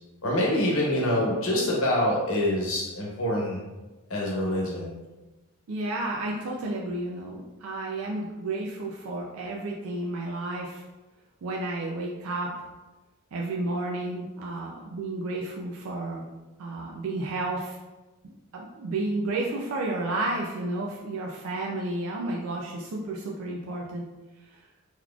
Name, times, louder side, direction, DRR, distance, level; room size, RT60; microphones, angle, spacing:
voice 1, 0.2-3.6 4.1-4.9, left 1 dB, 70° left, -3 dB, 1.0 m, -25 dB
voice 2, 5.7-10.8 11.4-12.7 13.3-16.2 16.6-17.8 18.2-24.1 24.5-24.6, right 2 dB, 75° right, -2 dB, 0.4 m, -32 dB
3.8 x 3.0 x 2.3 m, 1.1 s
head